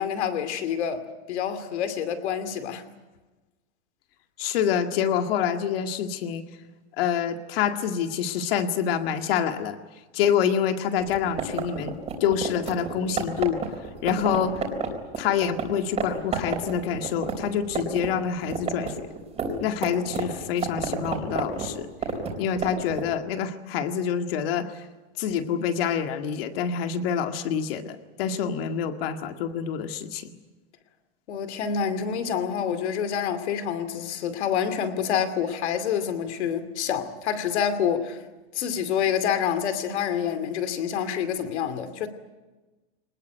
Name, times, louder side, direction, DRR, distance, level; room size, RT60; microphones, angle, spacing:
voice 1, 0.0-2.8 31.3-38.2 38.5-42.1, left 8 dB, 75° left, 2.6 m, -27 dB
voice 2, 4.4-6.4 7.0-9.8 10.1-12.0 12.2-13.6 14.0-14.6 15.2-19.1 19.6-21.9 22.4-24.7 25.2-30.3, left 8 dB, 60° left, 2.0 m, -26 dB
sound 1, 11.0-15.7 16.0-16.1 16.3-18.1 18.3-23.1, right 6 dB, 20° right, 4.1 m, -30 dB
23.0 x 20.0 x 9.2 m
supercardioid pair, 160°, 34 cm